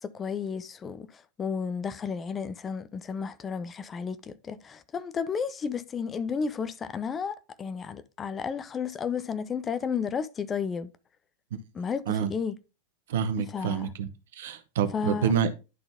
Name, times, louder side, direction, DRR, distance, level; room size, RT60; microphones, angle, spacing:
voice 1, 0.0-10.9 11.7-12.6 13.4-13.9 14.9-15.3, left 6 dB, 20° left, 0.5 m, -32 dB
voice 2, 13.1-15.6, right 8 dB, 55° right, 0.8 m, -28 dB
11.0 x 4.0 x 3.5 m
figure-of-eight pair, 90°, 0 cm